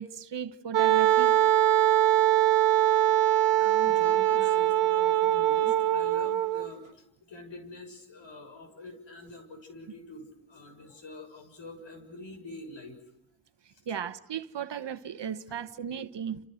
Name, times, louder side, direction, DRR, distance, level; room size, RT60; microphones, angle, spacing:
voice 1, 0.0-1.3 13.9-16.4, right 8 dB, 60° right, 1.3 m, -36 dB
Wind instrument woodwind instrument, 0.7-6.7, right 13 dB, 80° right, 1.2 m, -22 dB
voice 2, 3.4-13.0 13.7-13.8, left 2 dB, 65° left, 7.0 m, -45 dB
29.0 x 28.5 x 6.5 m
cardioid pair, 55°, 48 cm